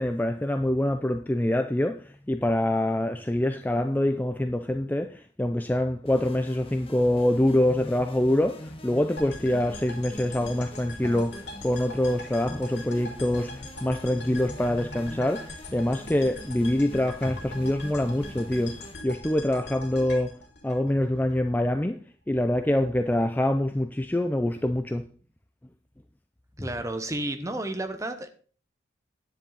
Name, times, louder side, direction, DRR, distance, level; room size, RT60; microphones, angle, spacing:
voice 1, 0.0-18.8 19.0-20.4 20.6-22.0 22.3-25.1, left 1 dB, 10° left, 0.4 m, -25 dB
sound 1, 6.1-19.0, left 1 dB, 30° left, 1.4 m, -44 dB
sound 2, 9.2-21.3, left 1 dB, 60° left, 3.5 m, -42 dB
voice 2, 26.6-28.3, right 1 dB, 15° right, 1.1 m, -31 dB
10.5 x 10.0 x 4.1 m
head